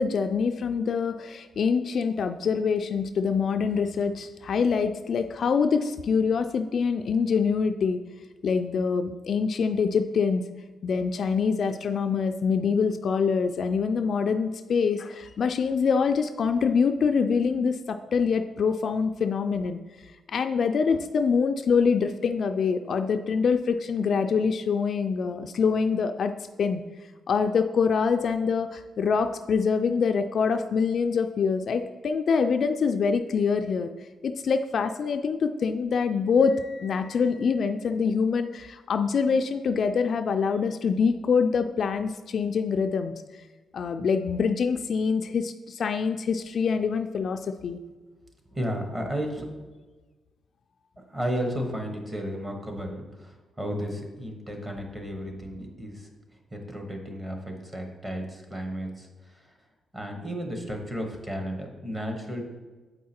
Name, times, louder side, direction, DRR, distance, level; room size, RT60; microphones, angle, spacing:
voice 1, 0.0-8.0 8.4-10.4 10.8-19.8 20.3-26.3 26.6-26.8 27.3-33.9 34.2-43.1 43.7-47.8, left 5 dB, 50° left, 7 dB, 0.3 m, -25 dB
voice 2, 48.5-49.5 51.1-56.1 56.5-59.1 59.3-59.4 59.9-62.4, equal, 20° right, 3 dB, 1.1 m, -33 dB
7.8 x 4.6 x 4.3 m, 1.3 s
cardioid pair, 135°, 0 cm